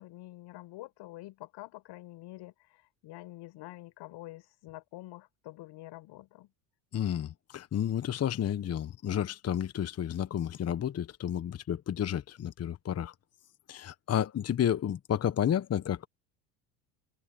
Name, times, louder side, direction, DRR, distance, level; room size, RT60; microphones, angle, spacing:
voice 1, 0.0-6.5, left 17 dB, 60° left, 5.7 m, -47 dB
voice 2, 6.9-13.1 13.7-16.1, left 10 dB, 30° left, 1.2 m, -31 dB
hypercardioid pair, 85°, 48 cm